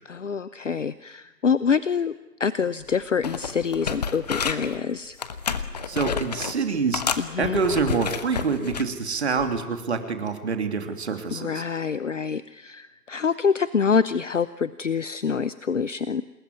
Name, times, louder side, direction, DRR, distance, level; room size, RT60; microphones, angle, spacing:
voice 1, 0.1-2.1 2.4-5.2 7.2-7.6 11.3-16.2, left 6 dB, 50° left, 15 dB, 0.9 m, -26 dB
sound 1, 2.8-3.0 3.2-4.8 5.2-6.6 6.9-8.9 9.4-9.6, left 6 dB, 25° left, 1.2 m, -30 dB
voice 2, 5.9-7.0 7.4-11.6, right 5 dB, 40° right, 6 dB, 3.1 m, -26 dB
27.5 x 20.5 x 9.6 m, 1.1 s
figure-of-eight pair, 145°, 48 cm